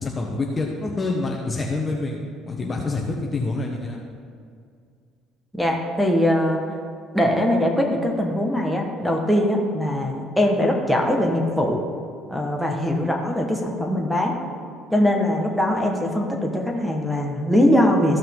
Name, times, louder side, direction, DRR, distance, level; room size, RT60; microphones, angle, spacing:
voice 1, 0.0-4.0, left 3 dB, 25° left, -1 dB, 1.0 m, -27 dB
voice 2, 5.5-6.6 7.1-11.8 12.3-14.3 14.9-18.2, left 1 dB, ahead, -1 dB, 1.4 m, -21 dB
14.5 x 5.5 x 3.8 m, 2.3 s
cardioid pair, 105°, 0 cm